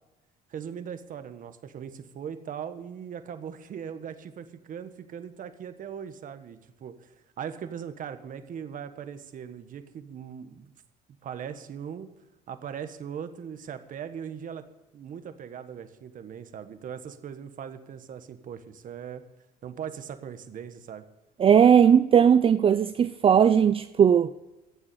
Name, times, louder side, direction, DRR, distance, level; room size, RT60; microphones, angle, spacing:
voice 1, 0.5-10.7 11.2-12.1 12.5-14.6 14.9-19.2 19.6-21.0, right 8 dB, 50° right, 1.4 m, -39 dB
voice 2, 21.4-24.3, right 8 dB, 35° right, 0.5 m, -18 dB
14.5 x 7.3 x 8.4 m
cardioid pair, 110°, 17 cm